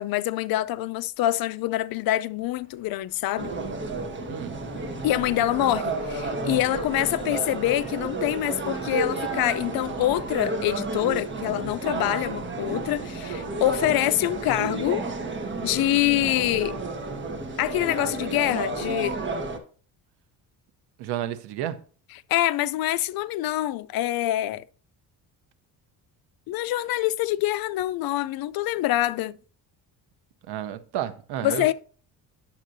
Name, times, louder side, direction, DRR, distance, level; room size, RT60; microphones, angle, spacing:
voice 1, 0.0-3.5 5.0-15.0 15.6-16.8 17.6-19.2 22.3-24.6 26.5-29.4 31.4-31.7, left 15 dB, 65° left, 0.5 m, -25 dB
Traffic noise roadway noise, 2.4-17.3, left 1 dB, 20° left, 3.7 m, -53 dB
sound 1, 3.4-19.6, right 3 dB, 30° right, 1.3 m, -31 dB
voice 2, 21.0-21.8 30.5-31.7, right 11 dB, 90° right, 0.8 m, -31 dB
10.5 x 7.3 x 2.6 m
cardioid pair, 130°, 39 cm